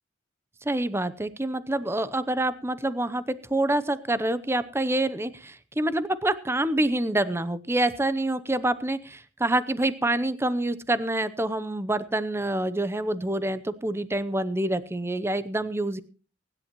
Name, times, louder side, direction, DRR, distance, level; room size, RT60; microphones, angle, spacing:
voice 1, 0.6-16.0, right 1 dB, 15° right, 14 dB, 0.7 m, -27 dB
24.0 x 11.0 x 3.0 m, 0.37 s
head